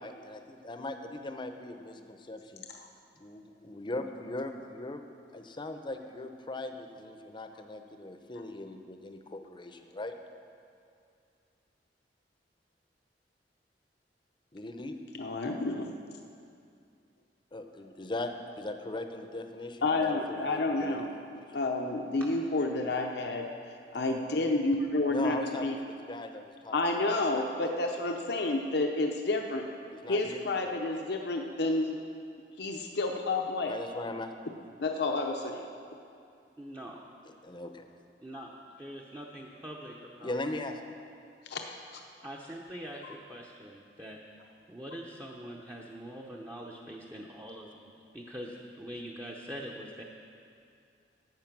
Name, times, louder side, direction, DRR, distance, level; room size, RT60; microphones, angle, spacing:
voice 1, 0.0-2.6 3.2-5.0 5.3-10.1 14.5-14.9 17.5-21.0 21.3-21.5 25.1-26.8 27.1-27.4 29.9-30.4 33.6-34.4 37.2-37.8 40.2-41.0, left 2 dB, 25° left, 7 dB, 0.7 m, -39 dB
voice 2, 15.2-15.9 19.8-21.1 21.5-23.5 23.9-25.7 26.7-29.6 30.1-32.0 32.6-33.7 34.8-35.7 41.5-41.6, left 2 dB, 65° left, 2 dB, 0.7 m, -30 dB
voice 3, 36.6-37.0 38.2-38.5 38.8-40.3 42.2-44.2 44.7-50.0, equal, 15° right, -2 dB, 0.7 m, -43 dB
12.0 x 8.1 x 6.0 m, 2.4 s
head